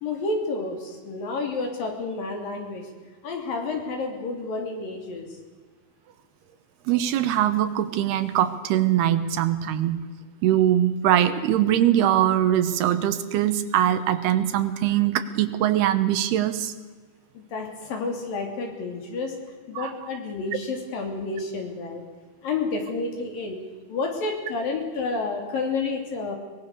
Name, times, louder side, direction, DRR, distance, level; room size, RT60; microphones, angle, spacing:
voice 1, 0.0-2.9 3.2-5.4 17.3-19.4 19.7-22.0 22.4-23.6 23.9-26.4, left 3 dB, 60° left, 3 dB, 4.7 m, -30 dB
voice 2, 6.9-10.0 10.4-16.7 19.8-19.9, right 11 dB, 80° right, 11 dB, 3.1 m, -22 dB
23.5 x 20.5 x 6.7 m, 1.4 s
omnidirectional pair, 4.6 m